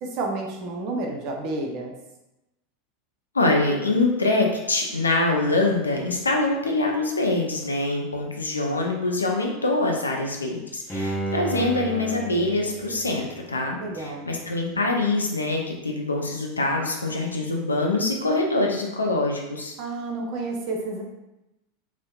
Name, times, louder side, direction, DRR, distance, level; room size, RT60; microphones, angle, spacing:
voice 1, 0.0-1.9 13.8-14.3 19.8-21.0, right 2 dB, 45° right, 1 dB, 0.5 m, -30 dB
voice 2, 3.3-19.7, left 2 dB, 80° left, 1 dB, 0.4 m, -24 dB
Bowed string instrument, 10.9-14.0 14.4-14.5, right 2 dB, 15° left, 0.5 m, -33 dB
2.7 x 2.0 x 2.3 m, 0.95 s
figure-of-eight pair, 85°, 0 cm